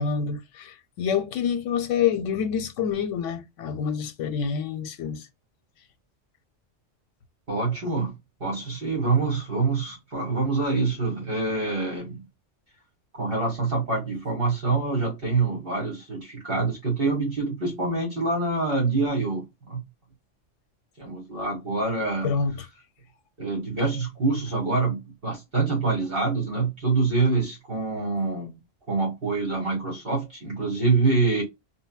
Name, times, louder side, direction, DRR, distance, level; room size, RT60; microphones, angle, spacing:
voice 1, 0.0-5.3 22.2-22.7, left 7 dB, 85° left, 1.0 m, -27 dB
voice 2, 7.5-8.1 8.4-12.2 13.1-19.8 21.0-22.3 23.4-28.6 28.9-31.4, right 3 dB, 50° right, 1.5 m, -26 dB
3.8 x 2.1 x 2.2 m
omnidirectional pair, 1.2 m